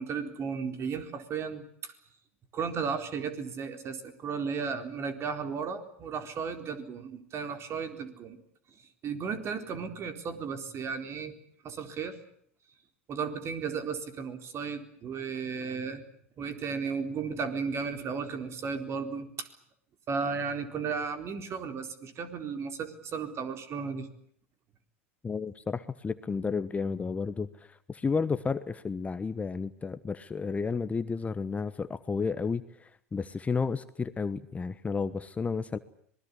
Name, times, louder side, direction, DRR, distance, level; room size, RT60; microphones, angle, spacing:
voice 1, 0.0-1.9 2.5-8.4 9.0-11.3 11.6-12.2 13.1-16.0 16.4-19.5 20.1-24.1, right 5 dB, 35° right, 8 dB, 4.1 m, -34 dB
voice 2, 25.2-35.8, left 5 dB, 20° left, 13 dB, 1.2 m, -32 dB
26.0 x 21.0 x 8.3 m, 0.64 s
hypercardioid pair, 90°, 7 cm